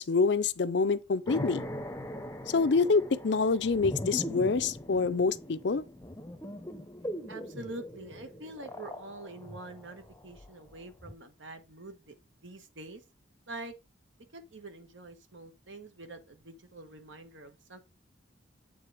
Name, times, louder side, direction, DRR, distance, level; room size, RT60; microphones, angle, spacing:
voice 1, 0.0-1.6 2.5-5.8, left 4 dB, 65° left, 0.5 m, -26 dB
sound 1, 1.3-10.7 11.0-11.1, left 1 dB, 15° left, 0.7 m, -41 dB
voice 2, 7.3-12.1 12.4-13.0 13.5-13.7 14.3-17.8, right 2 dB, 75° right, 1.3 m, -45 dB
8.4 x 3.9 x 4.9 m
head